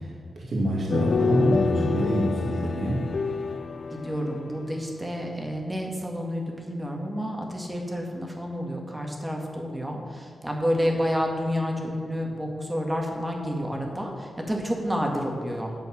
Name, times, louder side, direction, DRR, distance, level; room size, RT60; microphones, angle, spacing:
voice 1, 0.0-3.1, right 1 dB, 60° right, -4 dB, 2.6 m, -26 dB
sound 1, 0.9-4.7, left 5 dB, 55° left, 0.4 m, -27 dB
voice 2, 3.9-15.8, equal, 10° right, 1 dB, 2.1 m, -29 dB
10.5 x 7.7 x 6.4 m, 2.4 s
wide cardioid pair, 95°, 0 cm